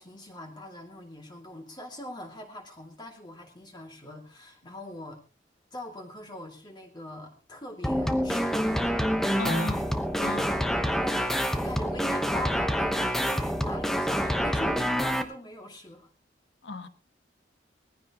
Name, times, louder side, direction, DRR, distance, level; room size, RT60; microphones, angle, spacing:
voice 1, 0.0-5.2 5.7-9.7 10.2-16.1, left 1 dB, 25° left, 2.4 m, -42 dB
sound 1, 7.8-15.2, equal, ahead, 1.0 m, -27 dB
voice 2, 9.4-9.9 10.2-10.4 16.6-16.9, left 3 dB, 70° left, 1.2 m, -34 dB
20.0 x 15.5 x 3.0 m
head